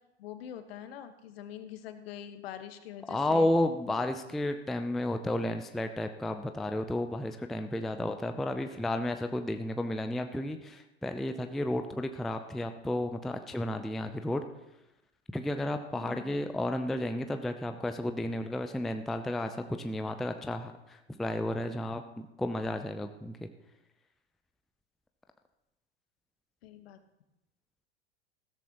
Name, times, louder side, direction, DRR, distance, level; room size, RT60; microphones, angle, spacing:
voice 1, 0.2-3.5 15.9-16.4 26.6-27.0, left 10 dB, 60° left, 9 dB, 1.3 m, -44 dB
voice 2, 3.1-14.4 15.3-23.5, left 1 dB, ahead, 7 dB, 0.4 m, -32 dB
15.5 x 13.0 x 2.9 m, 0.91 s
hypercardioid pair, 95°, 34 cm